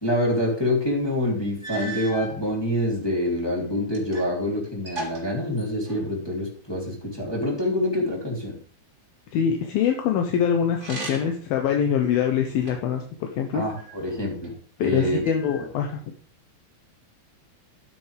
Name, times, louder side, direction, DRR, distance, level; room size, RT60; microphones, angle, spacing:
voice 1, 0.0-8.6 13.5-14.5 14.8-15.2 15.6-15.7, left 1 dB, 10° left, -3 dB, 1.8 m, -26 dB
sound 1, 1.0-1.1 1.6-2.4 3.1-4.4 4.6-6.2 10.7-11.5 12.0-13.0 13.7-14.5 15.2-16.0, right 1 dB, 20° right, 1.3 m, -38 dB
voice 2, 9.3-13.6 14.8-16.0, left 8 dB, 75° left, 3 dB, 2.4 m, -24 dB
12.0 x 8.4 x 3.4 m, 0.43 s
omnidirectional pair, 5.2 m